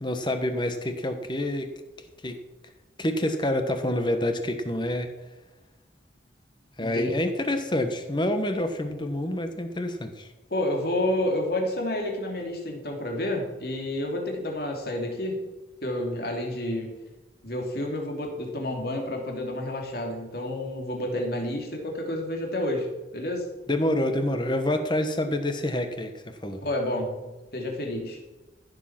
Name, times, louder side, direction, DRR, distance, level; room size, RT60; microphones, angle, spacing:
voice 1, 0.0-1.7 2.2-2.4 3.0-5.1 6.8-10.3 23.7-26.6, left 1 dB, 25° left, 7 dB, 1.2 m, -27 dB
voice 2, 6.8-7.1 10.5-15.4 15.8-16.9 17.4-23.5 26.6-28.2, left 1 dB, 55° left, 1 dB, 2.8 m, -30 dB
14.5 x 7.6 x 6.0 m, 1.1 s
head